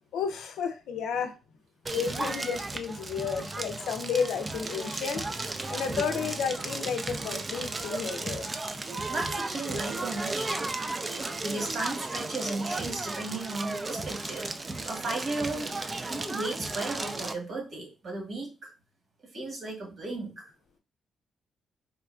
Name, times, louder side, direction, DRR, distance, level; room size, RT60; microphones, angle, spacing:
voice 1, 0.1-1.4 1.9-5.2 5.7-8.5, left 6 dB, 80° left, 0.5 m, -32 dB
Crackle, 1.9-17.3, right 2 dB, 35° right, 0.4 m, -34 dB
voice 2, 9.1-10.7 11.4-14.5 14.8-15.8 16.1-18.7 19.3-20.5, right 2 dB, 55° right, 1.5 m, -35 dB
3.8 x 2.2 x 2.4 m
supercardioid pair, 50°, 0 cm